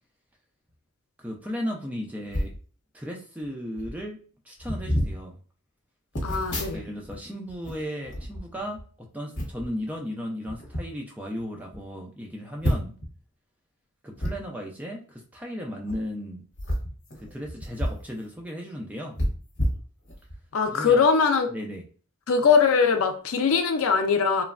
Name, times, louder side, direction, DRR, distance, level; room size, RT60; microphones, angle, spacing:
voice 1, 1.2-2.5 2.9-4.2 4.5-5.4 6.7-12.9 14.0-16.4 17.2-19.2 20.6-21.0 21.5-21.8, equal, 5° right, 0.3 m, -35 dB
sound 1, 2.3-2.6 3.4-3.5 3.7-4.0 4.6-5.2 6.1-7.2 7.5-8.9 9.3-9.7 10.5-10.8 11.4-11.5 11.7-11.8 12.6-13.1 14.2-14.3 15.8-16.0 16.5-18.1 18.4-18.5 19.2-20.4 20.9-21.0, equal, 55° left, 0.9 m, -29 dB
voice 2, 6.2-6.8 20.5-21.5 22.3-24.4, left 5 dB, 75° left, 0.4 m, -21 dB
3.1 x 2.1 x 2.4 m
head